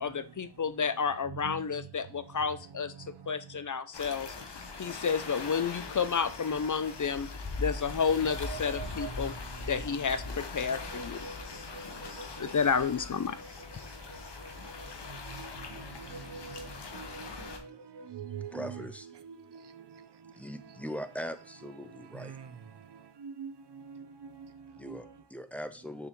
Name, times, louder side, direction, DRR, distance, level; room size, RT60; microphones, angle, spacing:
voice 1, 0.0-2.9 3.3-4.3 4.8-7.3 7.6-9.3 9.7-11.3 12.4-13.4, left 6 dB, 45° left, 0.5 m, -30 dB
voice 2, 1.3-1.9 8.3-9.9 10.7-13.7 14.1-20.3 20.6-22.5 22.9-25.1, right 6 dB, 70° right, 0.7 m, -46 dB
sound 1, 3.9-17.6, left 3 dB, 70° left, 1.1 m, -41 dB
voice 3, 18.5-19.1 20.4-22.4 24.8-26.1, equal, 5° left, 0.6 m, -40 dB
6.3 x 4.8 x 3.1 m
cardioid pair, 45°, 43 cm